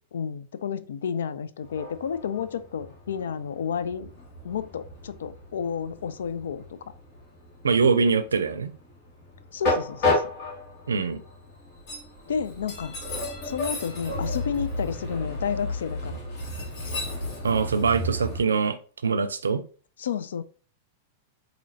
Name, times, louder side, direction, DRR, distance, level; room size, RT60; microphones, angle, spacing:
voice 1, 0.1-4.1 4.4-6.8 9.5-10.2 12.3-13.0 13.4-16.2 20.0-20.4, left 7 dB, 80° left, 14 dB, 0.3 m, -31 dB
Train, 1.6-18.4, left 2 dB, 55° left, 1.7 m, -32 dB
voice 2, 7.6-8.7 10.9-11.2 17.4-18.8 19.0-19.6, right 5 dB, 90° right, 11 dB, 0.4 m, -23 dB
4.2 x 2.7 x 2.7 m, 0.39 s
hypercardioid pair, 105°, 0 cm